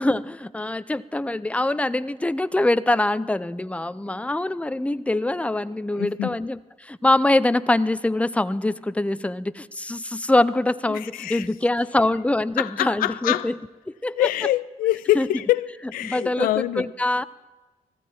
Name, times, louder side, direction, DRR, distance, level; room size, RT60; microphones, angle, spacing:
voice 1, 0.0-13.6 14.0-14.3 15.2-15.3 16.0-17.2, left 2 dB, 10° left, 0.6 m, -24 dB
voice 2, 5.9-6.4 10.9-11.5 12.6-13.5 14.2-16.9, left 15 dB, 75° left, 0.4 m, -25 dB
19.0 x 15.0 x 4.5 m
hypercardioid pair, 40°, 15 cm